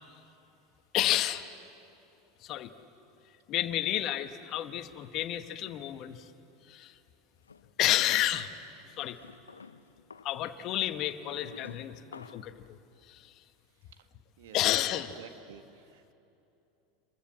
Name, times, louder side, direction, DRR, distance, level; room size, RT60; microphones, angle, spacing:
voice 1, 0.9-1.4 2.4-2.7 3.5-6.3 6.7-7.0 7.8-8.5 9.0-9.2 10.2-12.8 13.0-13.3 14.5-15.2, left 13 dB, 50° left, 9 dB, 1.4 m, -30 dB
sound 1, 7.5-8.5 9.1-12.6, left 4 dB, 90° left, 0.8 m, -50 dB
voice 2, 14.9-16.1, right 9 dB, 70° right, 8 dB, 1.6 m, -52 dB
29.0 x 22.5 x 7.6 m, 2.8 s
hypercardioid pair, 85°, 0 cm